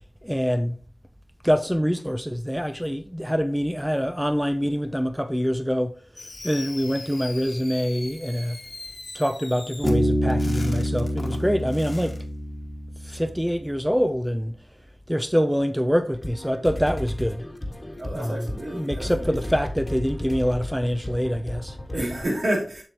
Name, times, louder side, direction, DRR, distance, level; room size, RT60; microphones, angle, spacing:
voice 1, 0.2-0.8 1.4-5.9 6.4-8.6 9.1-12.2 13.0-14.5 15.1-17.5 18.1-18.4 18.7-21.8, equal, 5° right, 0.5 m, -25 dB
Fireworks, 6.2-12.2, left 2 dB, 60° left, 1.3 m, -40 dB
Bass guitar, 9.8-13.4, equal, 35° right, 4.0 m, -26 dB
sound 1, 16.1-22.2, left 1 dB, 25° left, 1.5 m, -34 dB
voice 2, 18.0-19.5 21.9-22.8, right 1 dB, 70° right, 3.4 m, -29 dB
7.3 x 6.8 x 2.9 m
wide cardioid pair, 55°, 0 cm